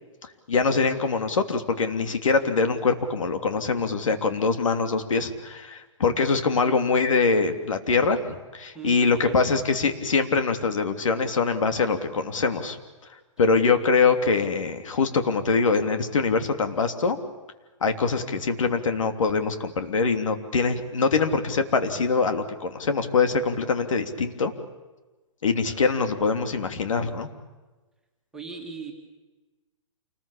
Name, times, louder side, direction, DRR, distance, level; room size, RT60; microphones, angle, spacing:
voice 1, 0.5-12.8 13.4-17.2 17.8-24.5 25.4-27.3, left 4 dB, 80° left, 7 dB, 3.2 m, -23 dB
voice 2, 8.7-9.4 25.6-25.8 28.3-28.9, right 5 dB, 5° right, 0 dB, 2.3 m, -39 dB
28.5 x 21.0 x 8.6 m, 1.2 s
hypercardioid pair, 180°, 16 cm